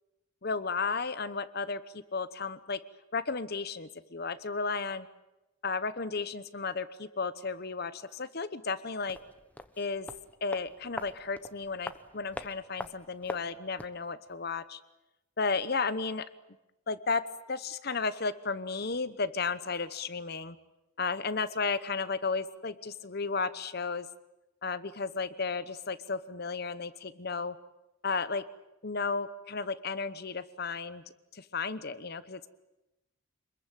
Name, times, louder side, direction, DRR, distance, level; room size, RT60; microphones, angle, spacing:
voice 1, 0.4-2.8 3.1-5.1 5.6-9.2 9.8-10.1 10.4-14.8 15.4-16.2 16.9-17.2 17.5-20.6 21.0-24.1 24.6-27.5 28.0-28.4 28.8-31.0 31.3-32.5, left 4 dB, 50° left, 13 dB, 1.0 m, -33 dB
sound 1, 9.0-14.0 14.3-14.4, left 1 dB, 5° left, 1.1 m, -44 dB
27.0 x 21.5 x 9.1 m, 0.97 s
head